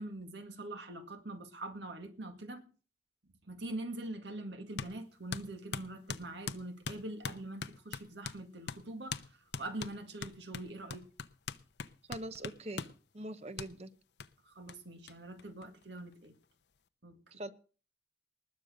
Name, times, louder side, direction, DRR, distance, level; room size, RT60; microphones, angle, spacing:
voice 1, 0.0-2.6 3.5-9.2 9.6-11.1 14.5-16.3 17.0-17.2, right 2 dB, 75° right, 2.0 m, -43 dB
sound 1, 4.8-4.9 5.3-8.4 8.7-8.8 9.1-9.3 9.5-13.0 13.6-13.7 14.2-14.3 14.7-14.8 15.1-15.2 15.4-16.1, left 5 dB, 70° left, 0.8 m, -41 dB
voice 2, 12.1-12.9 13.1-13.9 17.3-17.5, right 1 dB, 35° right, 0.8 m, -42 dB
19.5 x 6.6 x 6.5 m
head